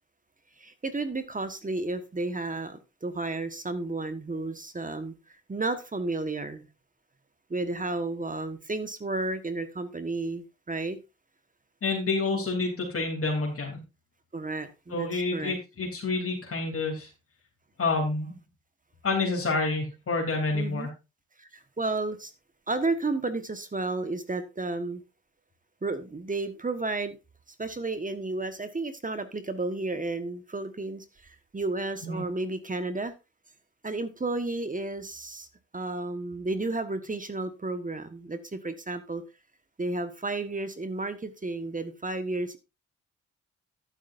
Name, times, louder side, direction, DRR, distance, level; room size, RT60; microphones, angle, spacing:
voice 1, 0.6-5.1 5.5-6.7 7.5-11.0 14.3-15.6 20.5-20.9 21.4-22.3 22.7-25.0 25.8-27.2 27.6-33.1 33.8-35.5 35.7-39.2 39.8-42.6, right 2 dB, 25° right, 10 dB, 1.4 m, -32 dB
voice 2, 11.8-13.8 14.9-17.1 17.8-18.3 19.0-20.9 32.0-32.2, left 3 dB, 50° left, 0 dB, 3.2 m, -28 dB
11.5 x 9.9 x 2.6 m, 0.27 s
supercardioid pair, 50°, 30 cm